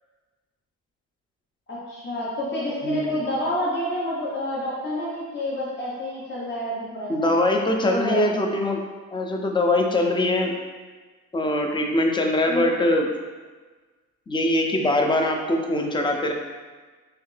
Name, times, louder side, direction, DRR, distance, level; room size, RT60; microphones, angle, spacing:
voice 1, 1.7-7.3 7.8-8.2 12.5-12.7, left 1 dB, 40° left, -6 dB, 0.8 m, -28 dB
voice 2, 2.8-3.2 7.1-8.8 9.1-10.5 11.3-13.1 14.3-16.3, left 1 dB, 15° left, 3 dB, 0.4 m, -22 dB
3.2 x 2.8 x 3.2 m, 1.4 s
cardioid pair, 90°, 30 cm